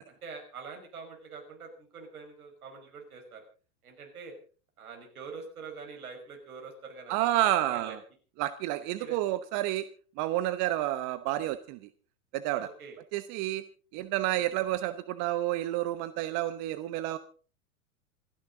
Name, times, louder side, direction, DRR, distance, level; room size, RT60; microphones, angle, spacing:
voice 1, 0.2-3.4 3.8-4.4 4.8-8.0 9.0-9.2 12.6-13.0, right 5 dB, 75° right, 3 dB, 5.6 m, -45 dB
voice 2, 7.1-8.0 8.4-9.9 10.2-11.8 12.3-12.7 13.1-13.6 13.9-17.2, right 14 dB, 40° right, 13 dB, 1.1 m, -30 dB
27.5 x 10.5 x 3.9 m, 0.39 s
hypercardioid pair, 95°, 44 cm